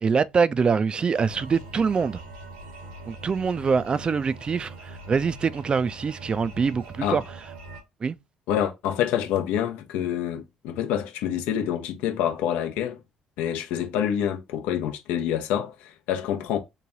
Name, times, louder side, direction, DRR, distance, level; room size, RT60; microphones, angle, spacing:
voice 1, 0.0-2.2 3.1-7.2 8.0-8.2, right 5 dB, 35° right, 0.4 m, -24 dB
sound 1, 1.1-7.8, right 2 dB, 80° right, 1.0 m, -42 dB
voice 2, 8.5-13.0 13.4-16.6, left 10 dB, 70° left, 0.7 m, -27 dB
3.2 x 2.2 x 3.8 m
hypercardioid pair, 50°, 3 cm